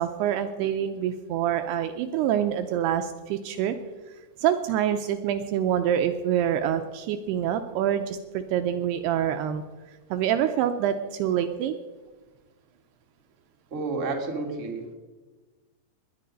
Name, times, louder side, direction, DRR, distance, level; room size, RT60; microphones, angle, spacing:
voice 1, 0.0-3.8 4.4-9.6 10.1-11.7, right 10 dB, 80° right, 8 dB, 2.5 m, -26 dB
voice 2, 13.7-14.9, right 3 dB, 30° right, 1 dB, 1.5 m, -30 dB
19.5 x 10.0 x 5.3 m, 1.3 s
omnidirectional pair, 5.1 m